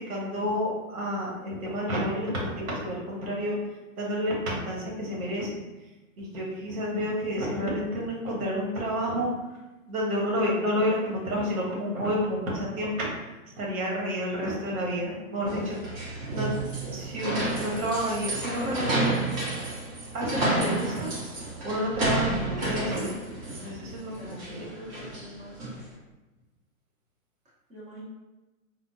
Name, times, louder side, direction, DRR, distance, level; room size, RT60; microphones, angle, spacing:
voice 1, 0.0-3.6 4.0-5.6 6.2-9.3 9.9-13.1 13.6-15.8 16.3-16.5 16.9-19.2 20.1-21.1 21.6-24.7, equal, 80° right, -3 dB, 1.3 m, -30 dB
sound 1, 15.5-25.9, right 2 dB, 40° right, 1.5 m, -31 dB
voice 2, 24.0-25.7 27.7-28.1, equal, 15° right, -5 dB, 0.7 m, -45 dB
3.5 x 2.1 x 2.6 m, 1.1 s
hypercardioid pair, 135°, 42 cm